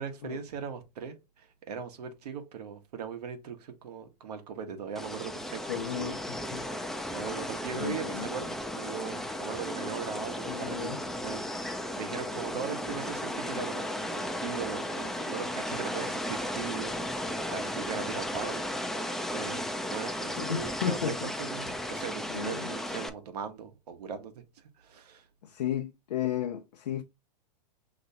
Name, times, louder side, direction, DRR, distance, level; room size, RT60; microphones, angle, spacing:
voice 1, 0.0-6.2 6.6-25.3, right 7 dB, 75° right, 1.0 m, -40 dB
sound 1, 5.0-23.1, left 1 dB, ahead, 0.4 m, -35 dB
voice 2, 5.7-6.2 6.5-6.7 7.7-8.3 10.5-11.0 20.4-21.3 22.3-22.7 25.4-27.0, left 10 dB, 85° left, 0.5 m, -33 dB
5.4 x 2.9 x 2.7 m
hypercardioid pair, 120°, 20 cm